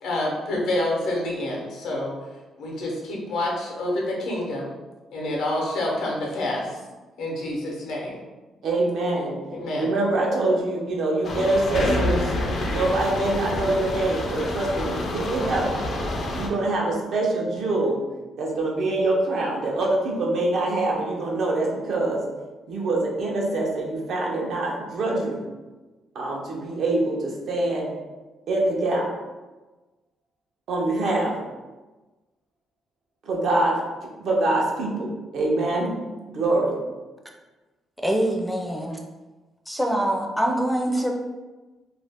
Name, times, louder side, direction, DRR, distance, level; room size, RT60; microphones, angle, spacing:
voice 1, 0.0-2.2 2.6-4.7 5.1-6.7 7.2-8.2 9.5-9.9, left 1 dB, 85° left, -2 dB, 0.7 m, -27 dB
voice 2, 8.6-9.4 9.7-12.3 12.6-15.8 16.3-18.0 18.4-22.2 22.7-25.4 26.1-27.9 28.5-29.1 30.7-31.4 33.2-33.8 34.2-35.9 36.3-36.8, right 2 dB, 70° right, -1 dB, 0.6 m, -24 dB
sound 1, 11.2-16.5, left 1 dB, 55° left, 0.4 m, -28 dB
voice 3, 38.0-39.0 39.7-41.1, right 1 dB, ahead, 1 dB, 0.4 m, -24 dB
2.5 x 2.0 x 3.4 m, 1.2 s
cardioid pair, 90°, 0 cm